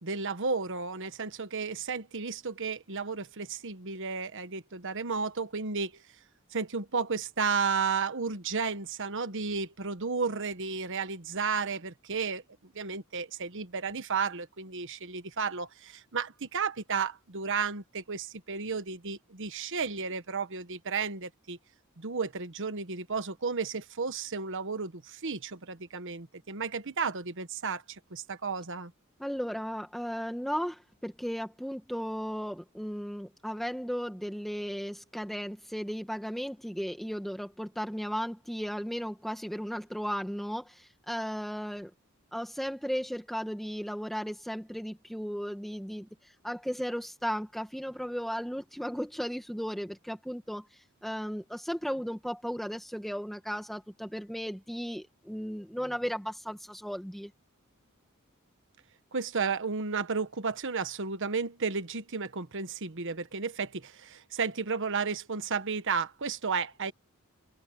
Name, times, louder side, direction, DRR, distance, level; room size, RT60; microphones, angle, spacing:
voice 1, 0.0-6.0 6.5-21.6 22.0-28.9 59.1-66.9, right 5 dB, 60° right, 1.3 m, -33 dB
voice 2, 29.2-41.9 42.3-57.3, equal, ahead, 1.9 m, -35 dB
open air
head